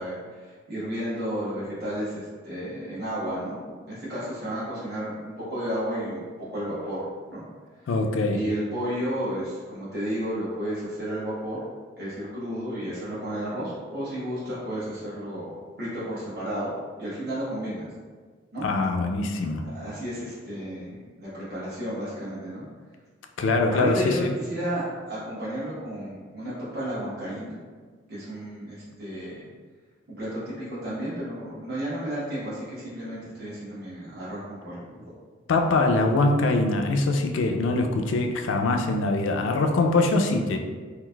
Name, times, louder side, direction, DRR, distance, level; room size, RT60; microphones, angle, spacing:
voice 1, 0.0-3.6 3.9-6.2 6.5-7.0 7.3-7.4 7.7-7.9 8.3-11.6 12.0-16.7 17.0-17.9 18.5-18.6 19.6-22.7 23.7-27.6 28.1-29.5 30.1-35.0, equal, 55° right, -11 dB, 0.9 m, -32 dB
voice 2, 7.9-8.4 18.6-19.8 23.4-24.3 35.5-40.6, left 2 dB, 75° left, 5 dB, 0.3 m, -23 dB
3.9 x 2.5 x 2.2 m, 1.5 s
head